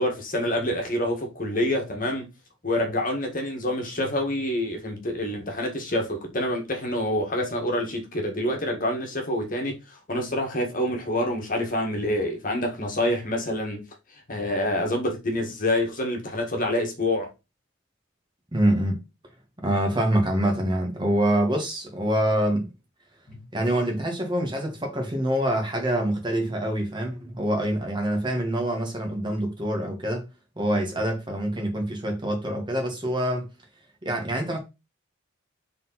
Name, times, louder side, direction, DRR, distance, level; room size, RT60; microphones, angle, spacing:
voice 1, 0.0-2.3 2.6-13.8 14.3-17.3 23.3-23.4, left 1 dB, 40° left, 1.7 m, -27 dB
voice 2, 18.5-19.0 19.6-22.7 23.5-30.3 30.6-33.5 34.0-34.6, right 1 dB, 20° right, 1.3 m, -25 dB
5.2 x 3.9 x 5.5 m
head